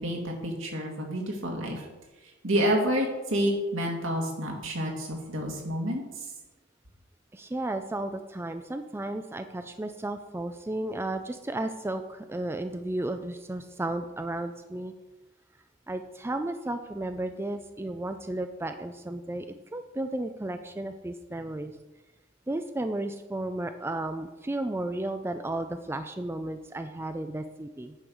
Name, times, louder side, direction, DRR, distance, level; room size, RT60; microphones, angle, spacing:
voice 1, 0.0-1.9 2.4-6.0, equal, 80° right, 0 dB, 2.1 m, -29 dB
voice 2, 7.3-14.9 15.9-19.5 19.7-21.7 22.5-27.9, right 1 dB, 10° right, 8 dB, 0.4 m, -33 dB
8.8 x 6.3 x 5.4 m, 1.2 s
head